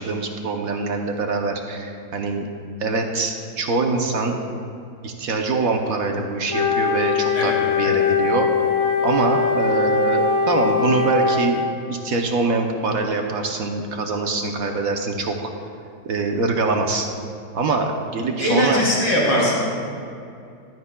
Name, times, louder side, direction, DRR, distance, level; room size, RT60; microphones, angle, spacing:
voice 1, 0.0-2.5 2.8-4.4 5.0-8.5 9.0-15.5 16.0-17.1 17.5-18.8, right 3 dB, 60° right, 3 dB, 1.0 m, -24 dB
Wind instrument woodwind instrument, 6.5-11.7, left 5 dB, 30° left, 0.7 m, -21 dB
voice 2, 7.3-8.0 18.4-19.6, left 1 dB, 70° left, -5 dB, 3.4 m, -21 dB
15.0 x 12.5 x 2.2 m, 2.4 s
omnidirectional pair, 1.9 m